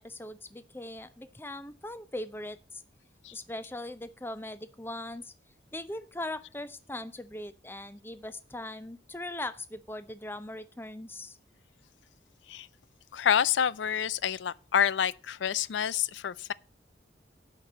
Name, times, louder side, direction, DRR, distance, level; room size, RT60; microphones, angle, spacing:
voice 1, 0.0-2.8 3.3-5.3 5.7-11.4, left 1 dB, 10° left, 0.6 m, -40 dB
voice 2, 13.1-16.5, left 8 dB, 80° left, 0.4 m, -28 dB
9.0 x 5.9 x 7.8 m
head